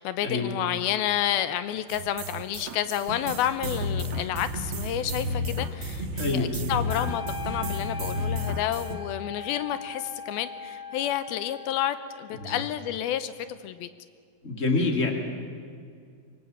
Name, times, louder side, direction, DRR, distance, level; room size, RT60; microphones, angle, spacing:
voice 1, 0.0-13.9, left 11 dB, 75° left, 12 dB, 2.5 m, -30 dB
sound 1, 1.9-8.9, left 1 dB, 55° right, 1.5 m, -32 dB
voice 2, 6.2-6.5 12.4-12.6 14.4-15.1, left 3 dB, 20° left, 2 dB, 2.5 m, -26 dB
Wind instrument woodwind instrument, 6.9-12.9, left 4 dB, 55° left, 2.2 m, -40 dB
25.5 x 23.5 x 7.3 m, 2.2 s
omnidirectional pair, 4.7 m